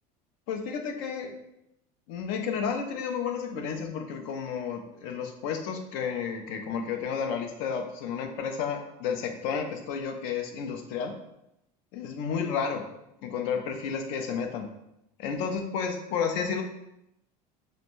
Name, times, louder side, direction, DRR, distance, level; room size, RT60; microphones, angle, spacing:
voice 1, 0.5-1.3 2.1-11.1 11.9-12.9 13.2-14.7 15.2-16.6, left 6 dB, 60° left, 5 dB, 0.4 m, -31 dB
2.5 x 2.1 x 2.9 m, 0.85 s
cardioid pair, 150°, 18 cm